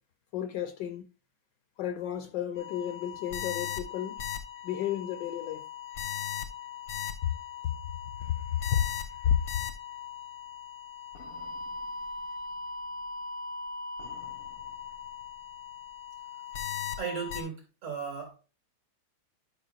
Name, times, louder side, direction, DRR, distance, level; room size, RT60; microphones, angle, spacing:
voice 1, 0.3-1.1 1.8-4.2 4.6-5.7 7.2-7.3 7.6-7.7 8.2-8.9 9.2-9.4, left 10 dB, 70° left, 1.1 m, -31 dB
sound 1, 2.6-17.4, left 7 dB, 90° left, 2.0 m, -39 dB
voice 2, 17.0-18.4, right 6 dB, 80° right, 3.4 m, -36 dB
11.5 x 5.3 x 2.4 m
omnidirectional pair, 2.3 m